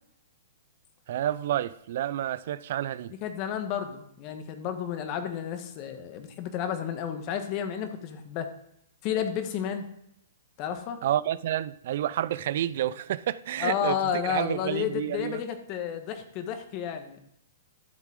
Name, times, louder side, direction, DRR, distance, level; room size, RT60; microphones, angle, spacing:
voice 1, 1.1-3.1 11.0-15.4, right 12 dB, 60° right, 0.4 m, -29 dB
voice 2, 3.2-8.5 9.0-9.8 10.6-11.0 13.6-17.2, left 8 dB, 40° left, 1.4 m, -31 dB
12.0 x 7.2 x 3.7 m
hypercardioid pair, 130°, 0 cm